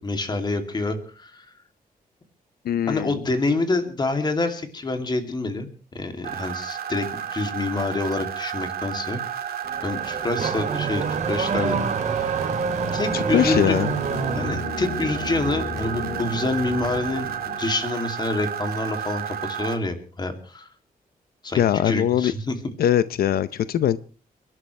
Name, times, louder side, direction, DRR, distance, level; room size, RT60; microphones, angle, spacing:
voice 1, 0.0-1.5 2.9-9.2 9.8-11.8 12.1-12.5 12.9-13.8 14.3-20.7 21.4-22.6, left 2 dB, 30° left, 6 dB, 2.7 m, -27 dB
voice 2, 2.6-3.2 13.1-13.9 21.6-22.3 22.8-24.0, left 10 dB, 85° left, 15 dB, 0.7 m, -21 dB
sound 1, 6.2-19.8, right 9 dB, 85° right, 2.2 m, -32 dB
Car / Accelerating revving vroom, 9.6-14.7, right 5 dB, 50° right, 2.9 m, -27 dB
sound 2, 12.9-17.9, left 2 dB, 45° left, 4.0 m, -34 dB
30.0 x 12.0 x 3.3 m, 0.36 s
wide cardioid pair, 160°, 15 cm